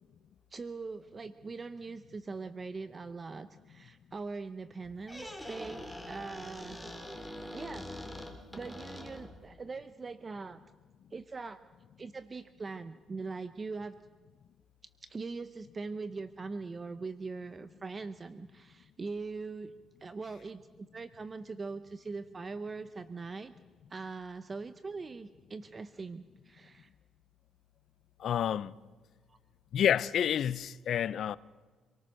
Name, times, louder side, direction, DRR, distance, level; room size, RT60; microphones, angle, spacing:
voice 1, 0.5-6.8 7.5-7.9 8.5-10.6 11.1-11.6 12.0-14.0 15.0-19.7 20.0-23.5 23.9-26.9 29.3-29.4, right 4 dB, 35° right, 0.8 m, -41 dB
Squeak, 4.8-9.5, left 1 dB, ahead, 3.7 m, -44 dB
voice 2, 28.2-28.7 29.7-31.4, left 9 dB, 65° left, 0.6 m, -29 dB
27.0 x 18.5 x 6.5 m
cardioid pair, 90°, 0 cm